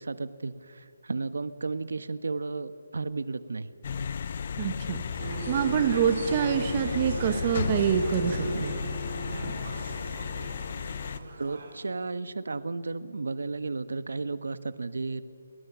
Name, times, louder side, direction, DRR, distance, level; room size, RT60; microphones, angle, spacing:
voice 1, 0.0-4.2 11.0-15.2, right 3 dB, 75° right, 13 dB, 1.2 m, -34 dB
sound 1, 3.8-11.2, left 6 dB, 30° left, 0.6 m, -34 dB
voice 2, 4.6-5.0 5.5-8.7, right 8 dB, 20° right, 9 dB, 0.9 m, -26 dB
sound 2, 5.2-11.9, right 2 dB, 40° right, 5.1 m, -38 dB
28.5 x 19.5 x 6.2 m, 2.3 s
hypercardioid pair, 180°, 0 cm